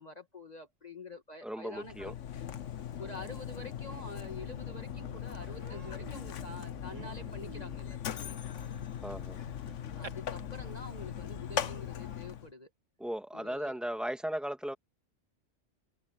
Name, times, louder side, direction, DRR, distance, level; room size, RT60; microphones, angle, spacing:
voice 1, 0.0-2.6 3.0-8.4 10.0-12.7 13.3-13.8, left 2 dB, 35° left, 2.0 m, -47 dB
voice 2, 1.4-2.1 9.0-9.4 13.0-14.7, right 1 dB, ahead, 1.9 m, -36 dB
Mechanisms, 1.7-12.5, left 9 dB, 75° left, 1.2 m, -40 dB
sound 1, 4.4-11.8, right 1 dB, 35° right, 2.8 m, -53 dB
Human voice, 4.6-4.7 5.0-5.2 5.6-10.1, right 4 dB, 80° right, 2.2 m, -52 dB
omnidirectional pair, 1.3 m